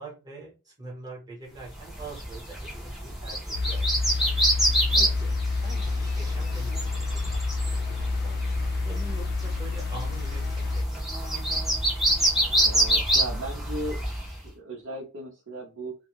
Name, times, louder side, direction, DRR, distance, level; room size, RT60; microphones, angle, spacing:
voice 1, 0.0-2.7 3.0-4.3 5.0-5.3 5.6-7.4 7.7-7.8 8.2-11.3, right 3 dB, 15° right, -3 dB, 0.9 m, -44 dB
sound 1, 1.9-14.3, right 1 dB, ahead, 0.6 m, -27 dB
sound 2, 3.5-10.8, left 3 dB, 45° left, 0.4 m, -28 dB
voice 2, 12.6-16.0, right 1 dB, 65° right, -4 dB, 0.7 m, -37 dB
2.1 x 2.1 x 2.9 m, 0.30 s
head